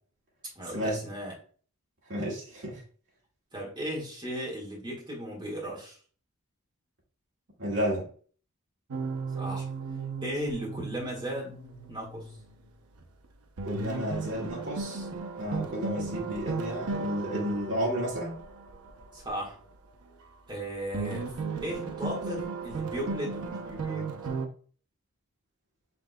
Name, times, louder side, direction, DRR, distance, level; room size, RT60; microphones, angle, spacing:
voice 1, 0.6-1.3 3.5-6.0 9.4-9.7 10.2-11.6 11.9-12.3 19.1-19.6 20.5-21.3 21.6-24.2, equal, 20° right, -3 dB, 1.8 m, -36 dB
voice 2, 2.1-2.8 7.6-8.1 13.6-15.1 15.4-18.4, equal, 55° right, -4 dB, 2.1 m, -32 dB
sound 1, 8.9-12.7 13.0-13.1 13.6-19.4 20.9-24.5, right 4 dB, 90° right, 0.7 m, -36 dB
5.9 x 3.6 x 2.3 m, 0.43 s
head